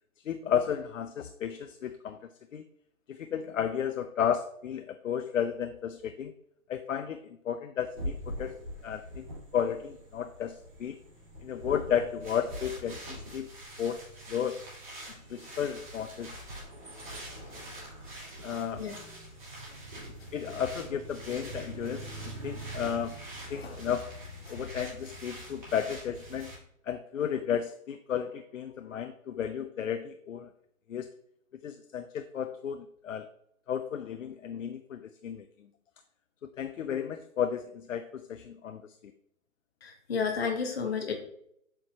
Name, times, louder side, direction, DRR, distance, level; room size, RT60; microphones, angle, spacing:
voice 1, 0.2-2.2 2.5-2.6 3.1-6.3 6.7-11.0 11.4-13.5 13.8-14.0 14.3-14.6 15.1-16.4 18.4-18.8 20.3-22.1 22.4-23.1 23.5-24.1 24.5-26.5 26.8-30.5 30.9-31.1 31.6-33.3 33.7-35.7 36.4-39.1, left 8 dB, 65° left, 9 dB, 0.5 m, -33 dB
sound 1, 7.9-26.6, right 1 dB, 35° right, 2.4 m, -43 dB
voice 2, 18.7-19.2 19.7-19.8 20.2-20.3 22.3-22.5 23.5-23.8 24.5-24.7 39.8-41.1, left 5 dB, 45° left, 3 dB, 0.9 m, -33 dB
7.7 x 4.5 x 2.8 m, 0.74 s
hypercardioid pair, 180°, 43 cm